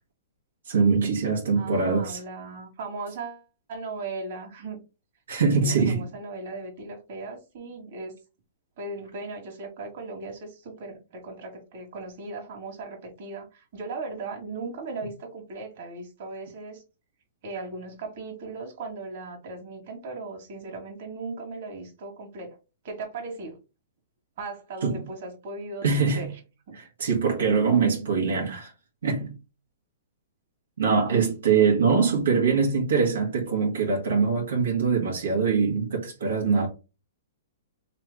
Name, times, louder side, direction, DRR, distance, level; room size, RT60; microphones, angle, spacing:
voice 1, 0.7-2.2 5.3-6.1 24.8-25.0 25.8-26.3 26.7-28.7 29.0-29.3 30.8-36.7, right 5 dB, 85° right, 1.4 m, -23 dB
voice 2, 1.6-4.8 5.6-8.2 8.8-16.8 17.4-22.6 22.8-23.6 24.4-26.4 26.7-26.8, right 3 dB, 55° right, 1.8 m, -37 dB
3.3 x 3.0 x 3.6 m
hypercardioid pair, 145°, 0 cm